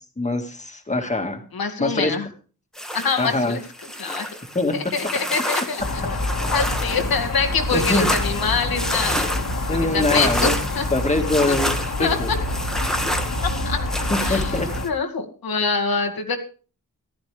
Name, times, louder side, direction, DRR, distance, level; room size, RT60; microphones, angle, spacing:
voice 1, 0.2-1.4 1.8-2.2 3.2-3.6 4.6-4.7 7.7-8.1 9.7-10.5 10.9-12.3 14.1-14.7, left 2 dB, 20° left, 4 dB, 1.9 m, -23 dB
voice 2, 1.5-2.3 2.9-3.6 4.0-4.3 4.7-6.2 6.5-9.3 9.9-10.9 11.5-11.6 12.0-12.2 13.6-13.8 14.2-14.5 14.8-16.4, left 4 dB, 85° left, 5 dB, 2.2 m, -24 dB
sound 1, 2.8-14.9, equal, ahead, 1.4 m, -29 dB
sound 2, 5.8-14.9, left 2 dB, 65° left, 2.1 m, -27 dB
15.0 x 12.5 x 3.4 m, 0.38 s
wide cardioid pair, 135°, 35 cm